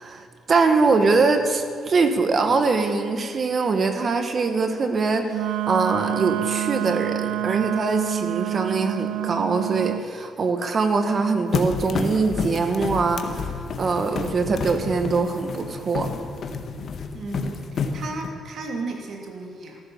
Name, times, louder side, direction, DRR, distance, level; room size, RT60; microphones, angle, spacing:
voice 1, 0.0-5.2 5.7-13.4 13.8-16.1, right 4 dB, 45° right, 7 dB, 1.7 m, -22 dB
Wind instrument woodwind instrument, 5.3-10.1, right 15 dB, 90° right, 0.3 m, -27 dB
sound 1, 11.5-18.3, left 4 dB, 55° left, 1.5 m, -30 dB
voice 2, 17.1-19.8, right 3 dB, 60° right, 2 dB, 3.1 m, -34 dB
14.5 x 14.0 x 7.2 m, 2.1 s
cardioid pair, 90°, 0 cm